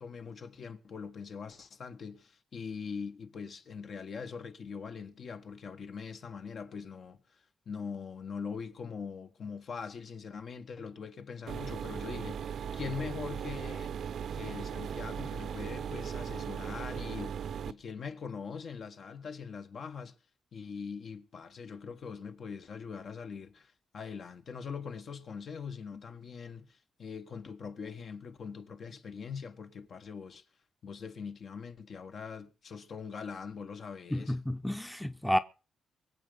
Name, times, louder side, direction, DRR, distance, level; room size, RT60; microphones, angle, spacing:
voice 1, 0.0-7.2 7.6-13.9 14.3-20.1 20.5-30.4 30.8-34.4, left 6 dB, 55° left, 1.5 m, -42 dB
sound 1, 11.5-17.7, right 8 dB, 65° right, 0.7 m, -38 dB
voice 2, 34.1-35.4, equal, 5° left, 0.8 m, -30 dB
22.5 x 8.0 x 5.3 m
cardioid pair, 100°, 0 cm